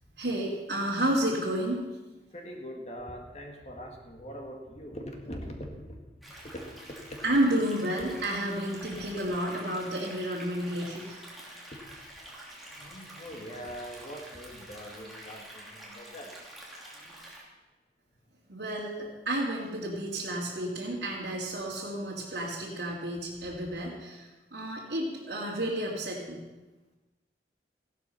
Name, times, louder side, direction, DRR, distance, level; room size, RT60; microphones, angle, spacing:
voice 1, 0.2-1.8 7.2-11.2 18.5-26.4, right 1 dB, 75° right, -6 dB, 2.6 m, -31 dB
voice 2, 2.3-5.9 12.8-16.3, equal, 40° left, 2 dB, 1.9 m, -42 dB
sound 1, 6.2-17.4, right 1 dB, ahead, 2.9 m, -47 dB
15.0 x 12.0 x 5.8 m, 1.1 s
head